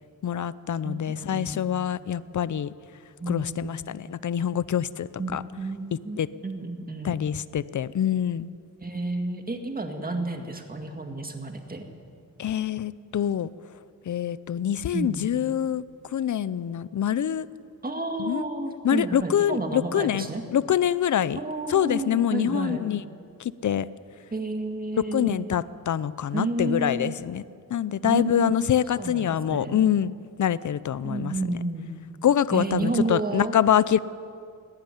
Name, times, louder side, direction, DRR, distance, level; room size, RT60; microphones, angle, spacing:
voice 1, 0.2-2.7 3.3-5.4 6.2-6.3 7.0-8.5 12.4-13.5 14.1-15.8 16.1-17.5 18.2-18.4 18.8-21.4 21.7-23.0 23.4-23.9 25.1-27.4 27.7-30.1 30.4-31.3 32.2-34.0, left 9 dB, 60° left, 17 dB, 0.6 m, -25 dB
voice 2, 0.8-1.7 3.2-3.8 5.2-5.3 5.6-7.2 8.8-11.8 14.9-15.3 17.8-20.4 21.4-22.8 24.3-25.6 26.3-27.1 28.0-28.5 29.0-29.8 31.0-31.9 32.5-33.6, right 2 dB, 25° right, 4 dB, 2.0 m, -31 dB
18.5 x 17.5 x 10.0 m, 2.3 s
wide cardioid pair, 155°, 34 cm